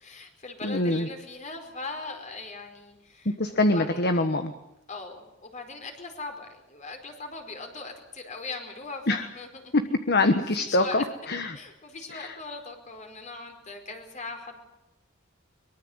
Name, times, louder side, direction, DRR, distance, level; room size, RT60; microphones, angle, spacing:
voice 1, 0.0-4.1 4.9-9.7 10.5-11.0 11.5-14.6, left 3 dB, 35° left, 5 dB, 4.7 m, -40 dB
voice 2, 0.6-1.1 3.4-4.5 9.1-9.3 9.7-9.8 10.1-11.6 12.1-12.4, left 2 dB, 55° left, 8 dB, 1.3 m, -24 dB
23.5 x 23.0 x 8.1 m, 0.91 s
head